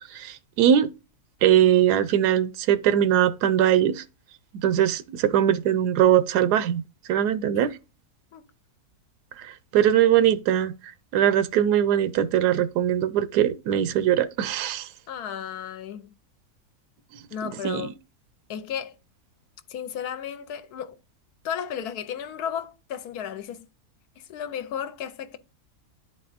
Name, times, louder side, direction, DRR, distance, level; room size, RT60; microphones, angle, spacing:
voice 1, 0.1-0.9 1.4-4.0 4.5-6.8 7.1-7.8 9.4-10.7 11.1-14.9 17.6-17.9, right 10 dB, 85° right, 1.2 m, -21 dB
voice 2, 15.1-16.1 17.3-17.9 18.5-18.9 19.7-21.0 21.4-23.6 24.2-25.4, left 8 dB, 80° left, 1.2 m, -34 dB
11.0 x 4.2 x 2.5 m
omnidirectional pair, 1.7 m